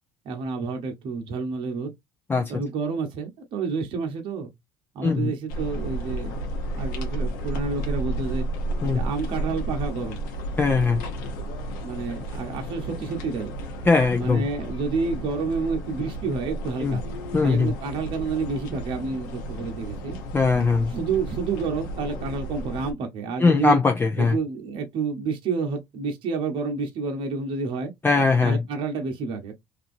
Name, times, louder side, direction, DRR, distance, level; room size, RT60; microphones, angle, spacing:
voice 1, 0.2-1.9 2.5-4.5 4.9-6.4 6.7-8.5 8.9-10.2 11.8-13.5 14.2-17.0 17.4-20.2 20.9-23.8 24.2-27.9 28.4-29.5, right 4 dB, 60° right, 0.9 m, -29 dB
voice 2, 2.3-2.6 5.0-5.3 8.8-9.0 10.6-11.0 13.8-14.5 16.8-17.0 17.3-17.7 20.3-20.9 23.4-24.4 28.0-28.6, left 4 dB, 20° left, 0.6 m, -20 dB
sound 1, 5.5-22.9, right 1 dB, 85° left, 0.9 m, -32 dB
2.8 x 2.5 x 2.5 m
supercardioid pair, 80°, 10 cm